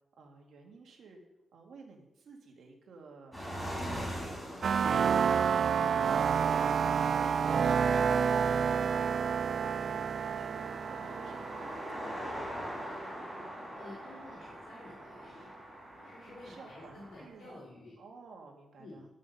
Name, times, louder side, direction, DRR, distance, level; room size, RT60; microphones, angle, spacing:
voice 1, 0.2-1.2 1.5-4.0 4.4-5.0 9.4-13.0 16.2-17.6 18.0-19.0, right 4 dB, 70° right, 1 dB, 2.0 m, -53 dB
sound 1, 3.3-17.2, equal, 5° left, 4.0 m, -44 dB
sound 2, 4.6-13.2, right 7 dB, 55° right, 0.3 m, -29 dB
voice 2, 13.7-15.5 16.0-17.9 18.8-19.1, left 2 dB, 85° left, -6 dB, 3.8 m, -51 dB
11.0 x 6.3 x 5.6 m, 0.90 s
wide cardioid pair, 145°, 0 cm